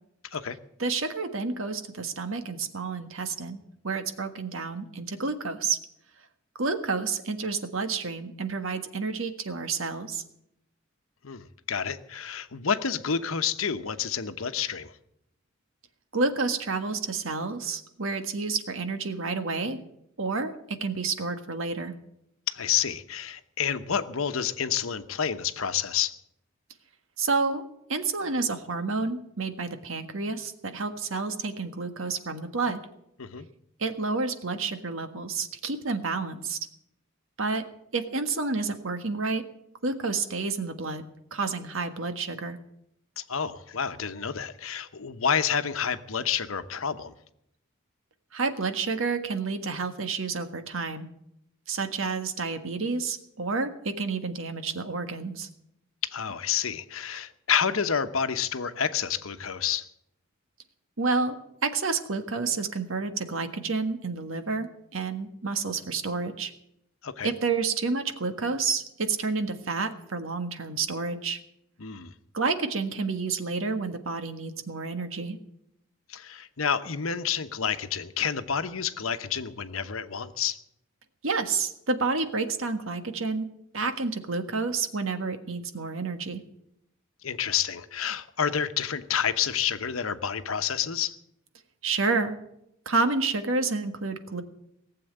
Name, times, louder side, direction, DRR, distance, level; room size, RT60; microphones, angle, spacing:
voice 1, 0.8-5.8 6.6-10.2 16.1-19.8 20.2-21.9 27.2-27.6 27.9-32.8 33.8-36.6 37.4-37.6 37.9-39.4 39.8-41.0 41.3-42.6 48.3-51.1 51.7-55.5 61.0-66.5 67.2-71.4 72.3-75.4 81.2-86.4 91.8-92.4 92.8-94.4, right 4 dB, 75° right, 8 dB, 1.6 m, -29 dB
voice 2, 11.2-14.9 22.5-26.2 33.2-33.5 43.2-47.1 56.0-59.9 67.0-67.3 71.8-72.1 76.1-80.6 87.2-91.2, left 7 dB, 85° left, 10 dB, 1.0 m, -29 dB
18.5 x 7.7 x 9.0 m, 0.77 s
head